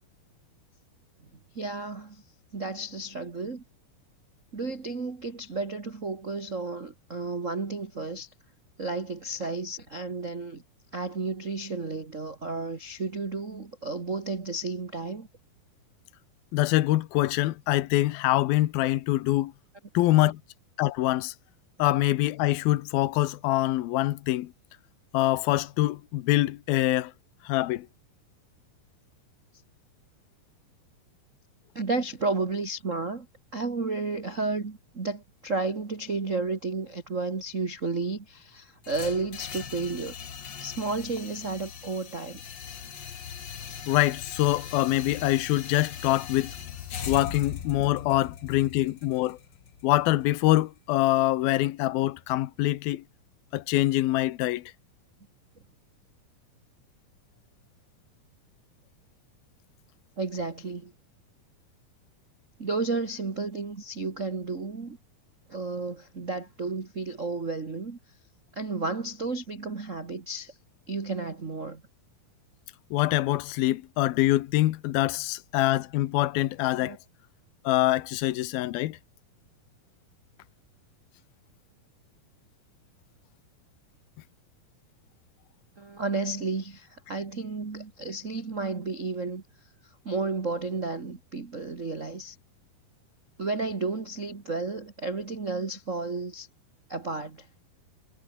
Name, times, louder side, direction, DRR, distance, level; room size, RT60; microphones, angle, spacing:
voice 1, 1.5-2.2 2.5-3.6 4.5-8.3 8.8-10.6 10.9-15.3 31.7-33.3 33.5-40.1 40.6-42.4 60.2-60.9 62.6-65.0 65.5-68.0 68.5-70.5 70.9-71.8 76.8-77.0 85.8-89.4 90.0-92.4 93.4-96.5 96.9-97.5, right 3 dB, 30° right, 1.6 m, -32 dB
voice 2, 16.5-19.5 19.9-20.4 20.8-21.3 21.8-24.5 25.1-27.1 27.4-27.9 43.9-46.6 47.1-49.4 49.8-53.0 53.5-54.7 72.9-77.0 77.6-79.0, left 16 dB, 85° left, 2.8 m, -24 dB
sound 1, 38.8-50.9, left 7 dB, 45° left, 1.6 m, -40 dB
omnidirectional pair, 4.2 m